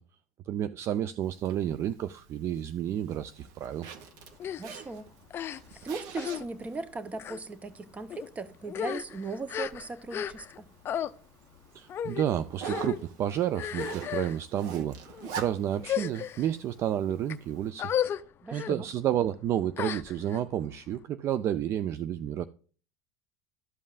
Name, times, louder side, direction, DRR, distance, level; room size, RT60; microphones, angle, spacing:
voice 1, 0.5-3.9 11.7-17.9 18.5-22.4, right 10 dB, 40° right, 0.3 m, -31 dB
Zipper (clothing), 1.2-17.7, right 7 dB, 60° right, 0.9 m, -46 dB
sound 1, 4.4-4.6 5.3-5.8 6.2-6.4 7.1-7.4 8.1-8.3 8.7-10.6 10.8-11.1 11.9-12.3 12.6-13.0 13.5-14.4 15.1-15.3 15.8-16.5 17.1-17.3 17.8-18.2 18.5-18.7 19.8-20.4, left 9 dB, 35° left, 0.4 m, -33 dB
voice 2, 4.6-5.1 5.8-10.7 18.4-18.9, right 3 dB, 20° right, 0.7 m, -38 dB
12.5 x 5.3 x 2.4 m
supercardioid pair, 115°, 7 cm